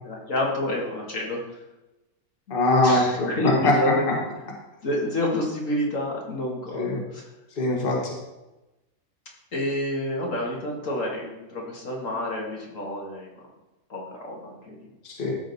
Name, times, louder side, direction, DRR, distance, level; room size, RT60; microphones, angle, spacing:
voice 1, 0.0-1.6 2.8-4.0 4.8-7.3 9.5-13.4 13.9-14.9, left 1 dB, 60° left, -2 dB, 1.9 m, -29 dB
voice 2, 2.5-4.1 6.7-7.0 7.6-8.1 15.0-15.3, left 2 dB, 40° left, -2 dB, 1.7 m, -22 dB
13.0 x 5.1 x 4.0 m, 1.0 s
omnidirectional pair, 1.6 m